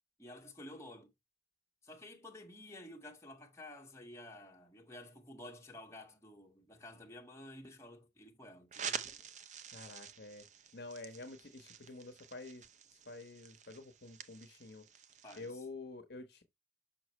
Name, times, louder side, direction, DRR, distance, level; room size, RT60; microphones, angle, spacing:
voice 1, 0.2-1.1 1.8-9.1 15.2-15.6, left 1 dB, 15° left, 1.6 m, -52 dB
sound 1, 8.7-15.5, right 7 dB, 40° right, 0.6 m, -47 dB
voice 2, 9.7-10.4 10.7-12.6 13.1-14.8 15.4-16.4, left 2 dB, 60° left, 1.1 m, -48 dB
6.2 x 6.0 x 3.0 m
head